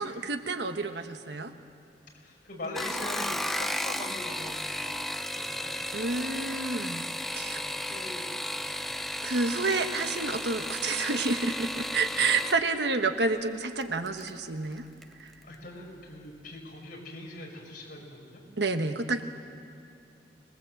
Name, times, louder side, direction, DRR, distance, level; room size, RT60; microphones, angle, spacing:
voice 1, 0.0-1.5 5.9-7.6 9.2-14.8 15.2-15.3 18.6-19.2, right 3 dB, 75° right, 8 dB, 1.2 m, -29 dB
voice 2, 2.1-5.0 5.3-5.8 7.5-9.1 15.4-18.4, left 1 dB, 50° left, -1 dB, 5.8 m, -42 dB
sound 1, 2.6-12.6 13.8-14.3 14.7-15.1 15.4-15.5, left 1 dB, ahead, 0.6 m, -34 dB
25.5 x 20.5 x 7.8 m, 2.6 s
head